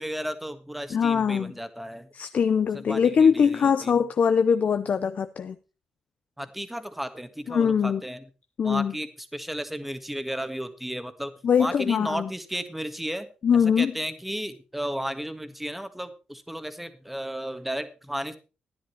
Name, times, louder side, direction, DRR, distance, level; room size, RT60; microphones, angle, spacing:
voice 1, 0.0-2.1 2.7-3.9 6.4-8.3 8.6-11.3 11.6-13.3 13.5-18.4, equal, 5° right, 1.6 m, -34 dB
voice 2, 0.9-1.5 2.1-5.6 7.5-8.0 8.6-8.9 11.4-12.3 13.4-13.9, left 7 dB, 50° left, 0.7 m, -22 dB
13.5 x 10.5 x 4.4 m
cardioid pair, 105°, 3 cm